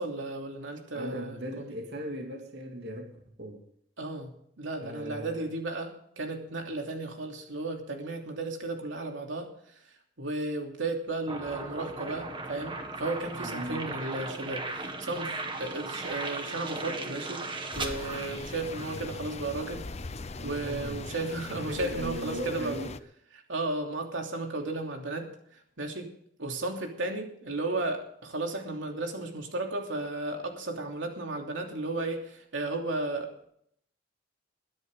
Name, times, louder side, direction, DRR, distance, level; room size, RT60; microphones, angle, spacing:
voice 1, 0.0-1.7 4.0-9.8 10.2-17.4 17.7-19.8 20.4-22.9 23.3-26.1 26.4-33.4, right 2 dB, 90° right, 3.0 m, -34 dB
voice 2, 0.9-3.6 4.8-5.5 13.4-13.9 20.4-21.0 21.5-22.9, right 1 dB, 60° right, 2.5 m, -38 dB
sound 1, 11.3-19.1, right 3 dB, 25° right, 1.9 m, -37 dB
sound 2, 17.7-23.0, left 3 dB, 35° left, 0.8 m, -40 dB
22.0 x 10.5 x 3.7 m
head